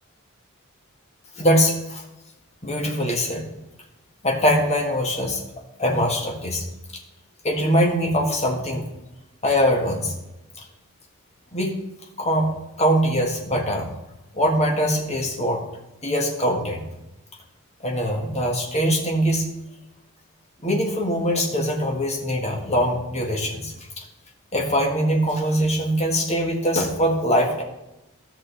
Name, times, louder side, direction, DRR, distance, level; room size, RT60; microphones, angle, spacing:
voice 1, 1.3-2.0 2.6-3.5 4.2-5.4 5.8-6.7 7.4-8.9 9.4-10.1 11.5-11.8 12.2-12.5 12.8-13.9 14.3-15.6 16.0-16.8 17.8-19.5 20.6-24.0 24.5-27.6, equal, 30° left, 0 dB, 1.6 m, -22 dB
13.0 x 6.5 x 3.4 m, 0.94 s
head